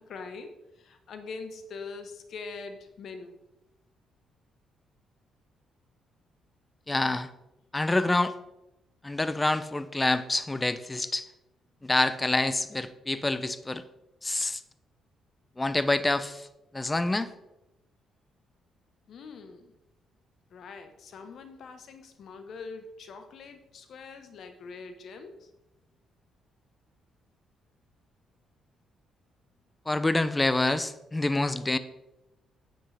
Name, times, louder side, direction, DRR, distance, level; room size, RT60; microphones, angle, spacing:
voice 1, 0.0-3.4 19.1-19.7 20.5-25.5, left 4 dB, 65° left, 7 dB, 1.2 m, -43 dB
voice 2, 6.9-7.3 7.7-8.3 9.0-11.2 11.8-13.8 14.2-14.6 15.6-16.5 16.7-17.3 29.9-31.8, left 2 dB, 15° left, 13 dB, 0.6 m, -27 dB
9.6 x 7.7 x 3.5 m, 0.93 s
cardioid pair, 90°, 0 cm